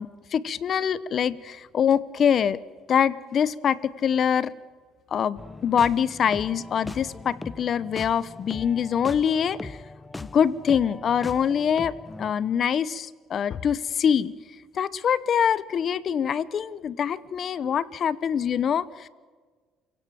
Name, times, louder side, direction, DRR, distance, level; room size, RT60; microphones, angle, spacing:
voice 1, 0.0-2.6 2.9-4.5 5.1-9.8 10.2-14.3 14.7-19.1, left 8 dB, 50° left, 18 dB, 0.9 m, -24 dB
sound 1, 5.4-12.3, left 3 dB, 15° left, 0.9 m, -40 dB
28.5 x 17.0 x 7.7 m, 1.5 s
cardioid pair, 95°, 0 cm